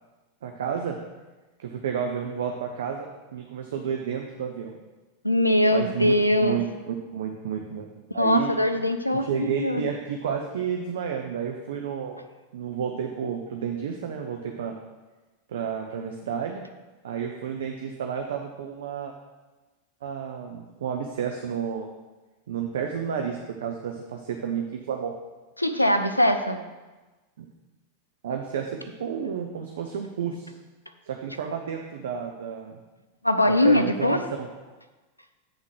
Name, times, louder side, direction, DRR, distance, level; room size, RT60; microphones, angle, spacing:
voice 1, 0.4-1.0 1.6-3.1 3.3-4.8 5.7-6.1 6.4-7.9 8.1-8.5 9.1-12.2 12.5-14.7 15.5-16.6 17.0-19.1 20.0-21.9 22.5-25.1 27.4-27.5 28.2-30.5 31.1-32.8 33.5-34.5, right 7 dB, 60° right, 3 dB, 0.6 m, -31 dB
voice 2, 5.2-6.6 8.1-9.8 25.6-26.6 33.2-34.2, left 1 dB, 85° left, 8 dB, 0.5 m, -22 dB
8.6 x 3.7 x 6.1 m, 1.2 s
figure-of-eight pair, 90°, 0 cm